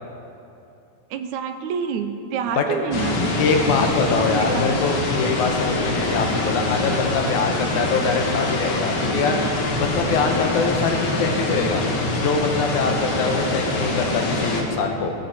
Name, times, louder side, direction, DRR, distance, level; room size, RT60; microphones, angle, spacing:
voice 1, 1.1-3.4 4.1-4.6, right 7 dB, 75° right, 8 dB, 2.2 m, -28 dB
sound 1, 2.9-14.6, left 2 dB, 45° left, 1.8 m, -24 dB
voice 2, 3.4-9.4 9.8-11.8 12.2-15.1, left 4 dB, 80° left, 3 dB, 2.7 m, -23 dB
18.0 x 15.0 x 4.3 m, 2.7 s
omnidirectional pair, 3.5 m